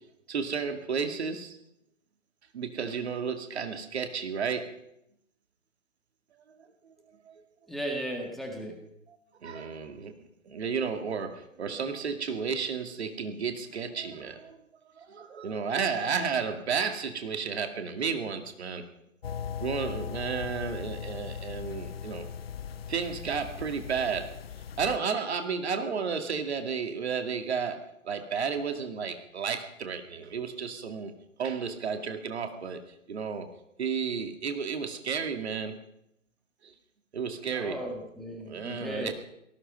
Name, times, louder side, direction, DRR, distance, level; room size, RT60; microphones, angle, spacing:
voice 1, 0.3-1.6 2.5-4.7 7.3-7.4 9.4-10.1 10.5-14.6 15.0-18.8 19.6-22.3 22.9-24.3 24.8-27.8 28.1-31.1 31.4-32.8 33.1-33.5 33.8-35.8 36.6-36.7 37.1-37.8 38.4-39.1, right 6 dB, 50° right, 6 dB, 2.2 m, -32 dB
voice 2, 7.7-8.8 37.5-39.1, equal, ahead, 1 dB, 1.9 m, -36 dB
sound 1, 19.2-25.0, left 7 dB, 45° left, 0.7 m, -38 dB
18.0 x 15.0 x 5.4 m, 0.81 s
figure-of-eight pair, 135°, 41 cm